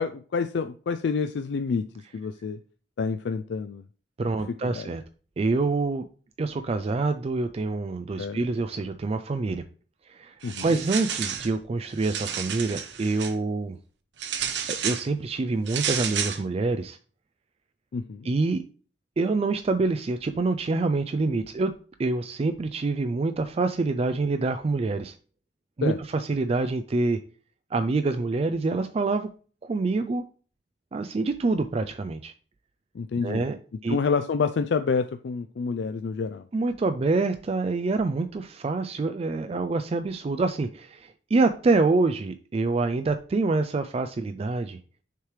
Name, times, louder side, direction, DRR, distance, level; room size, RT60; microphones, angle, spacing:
voice 1, 0.0-1.9 2.1-2.6 3.0-3.9 4.5-4.9 8.2-8.4 10.4-10.7 17.9-18.3 25.8-26.0 32.9-33.5 33.9-36.5, left 5 dB, 80° left, 0.4 m, -28 dB
voice 2, 4.2-5.0 5.4-6.1 6.4-9.6 10.1-13.8 14.7-17.0 18.2-18.6 19.2-25.2 25.8-27.2 27.7-29.3 29.6-30.2 30.9-32.3 33.2-33.6 33.8-34.0 36.5-44.8, right 3 dB, 35° right, 0.4 m, -26 dB
sound 1, 10.4-11.5 11.9-13.3 14.2-15.1 15.7-16.4, right 8 dB, 75° right, 0.8 m, -31 dB
6.6 x 4.6 x 3.3 m
head